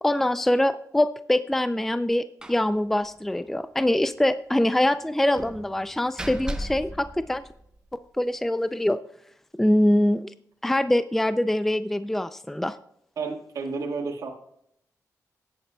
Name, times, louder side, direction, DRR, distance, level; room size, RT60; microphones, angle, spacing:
voice 1, 0.0-7.4 8.2-9.0 9.5-10.2 10.6-12.8, left 1 dB, 5° left, 13 dB, 0.3 m, -24 dB
Slam, 2.4-2.7 3.0-3.1 3.4-3.6 5.3-7.9, equal, 15° right, 0.8 m, -37 dB
voice 2, 13.2-14.3, right 4 dB, 70° right, -1 dB, 1.6 m, -31 dB
18.5 x 8.2 x 2.2 m, 0.73 s
cardioid pair, 105°, 6 cm